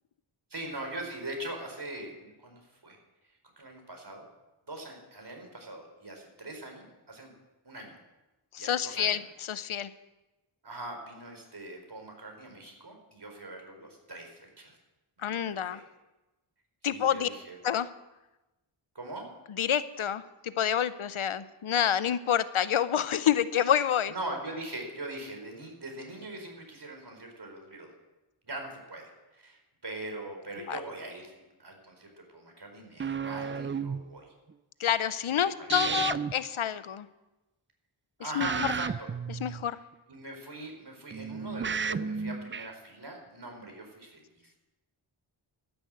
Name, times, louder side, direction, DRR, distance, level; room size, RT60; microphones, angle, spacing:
voice 1, 0.5-3.0 3.6-4.2 4.7-7.3 7.6-8.0 8.6-9.2 10.6-14.8 15.2-15.8 16.9-17.6 18.9-19.2 24.1-27.9 28.4-34.3 35.6-36.0 38.2-39.1 40.1-44.4, right 2 dB, 50° right, 2 dB, 4.6 m, -42 dB
voice 2, 8.5-9.9 15.2-15.8 16.8-17.3 17.6-17.9 19.6-24.1 30.7-30.8 34.8-37.1 38.2-38.7 39.3-39.8, left 9 dB, 75° left, 15 dB, 0.7 m, -28 dB
sound 1, 33.0-34.0 35.7-36.3 38.4-39.9 41.1-42.7, right 6 dB, 25° right, 0.4 m, -32 dB
12.5 x 10.5 x 7.6 m, 1.0 s
cardioid pair, 50°, 49 cm